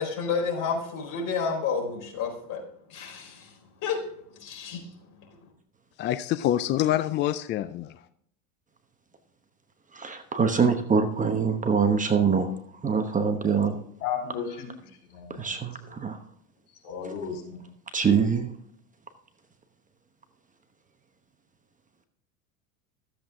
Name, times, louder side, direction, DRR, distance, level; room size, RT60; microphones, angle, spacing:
voice 1, 0.0-2.6 2.9-3.5 3.8-4.0 4.4-4.8, left 5 dB, 45° left, 1 dB, 4.4 m, -30 dB
voice 2, 6.0-8.0, left 12 dB, 25° left, 13 dB, 0.3 m, -26 dB
voice 3, 10.0-12.5 12.8-13.8 15.4-16.2 17.9-18.5, right 6 dB, 20° right, 7 dB, 1.0 m, -24 dB
voice 4, 14.0-14.7 15.1-15.5 16.8-17.6, left 7 dB, 75° left, 3 dB, 4.2 m, -34 dB
13.5 x 7.8 x 3.7 m, 0.67 s
supercardioid pair, 110°, 44 cm